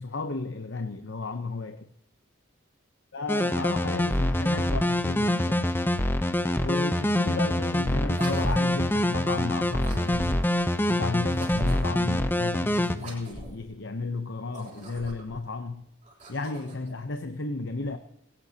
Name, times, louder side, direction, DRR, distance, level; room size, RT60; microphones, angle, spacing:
voice 1, 0.0-1.9 3.1-5.7 6.6-10.5 10.8-15.9 16.3-18.0, left 3 dB, 60° left, 0.8 m, -33 dB
sound 1, 3.3-13.0, left 1 dB, 10° left, 0.6 m, -25 dB
sound 2, 8.1-8.9 9.8-10.6 11.3-12.0 12.9-13.7 14.4-15.4 16.0-16.9, right 1 dB, 35° right, 3.5 m, -43 dB
20.0 x 17.5 x 2.9 m
head